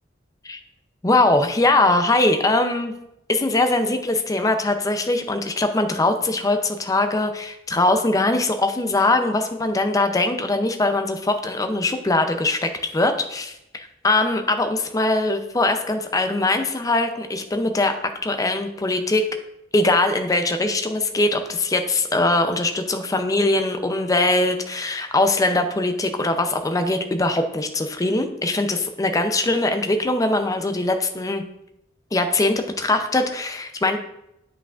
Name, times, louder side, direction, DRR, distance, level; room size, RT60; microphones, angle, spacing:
voice 1, 1.0-2.9 3.3-17.9 18.2-19.3 19.7-31.4 32.1-34.0, left 2 dB, 20° left, 6 dB, 0.5 m, -21 dB
8.3 x 5.8 x 2.4 m, 0.83 s
head